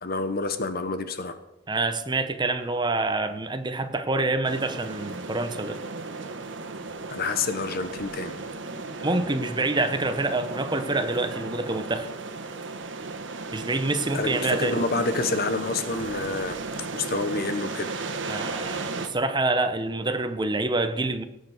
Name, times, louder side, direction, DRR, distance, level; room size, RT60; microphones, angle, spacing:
voice 1, 0.0-1.4 7.1-8.3 14.1-16.6 16.9-17.9, left 3 dB, 55° left, 10 dB, 1.2 m, -28 dB
voice 2, 1.7-5.8 9.0-12.1 13.5-14.8 18.3-21.2, right 2 dB, 25° right, 8 dB, 1.1 m, -27 dB
sound 1, 4.4-19.1, right 3 dB, 85° right, 1.4 m, -35 dB
18.0 x 7.1 x 6.7 m, 0.89 s
head